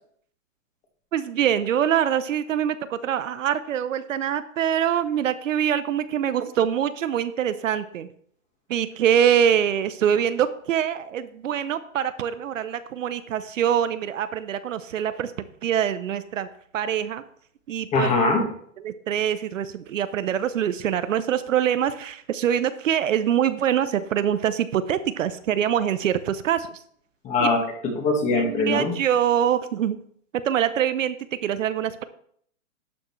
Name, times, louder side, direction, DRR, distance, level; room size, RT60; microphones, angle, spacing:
voice 1, 1.1-8.1 8.7-15.3 15.6-16.5 16.7-17.2 17.7-18.1 18.8-26.8 27.4-27.5 28.3-30.0 30.3-31.2 31.4-32.0, right 9 dB, 70° right, 13 dB, 0.8 m, -24 dB
voice 2, 17.9-18.4 27.2-29.0, left 3 dB, 15° left, 3 dB, 1.6 m, -22 dB
11.5 x 6.4 x 3.2 m, 0.63 s
hypercardioid pair, 155°, 40 cm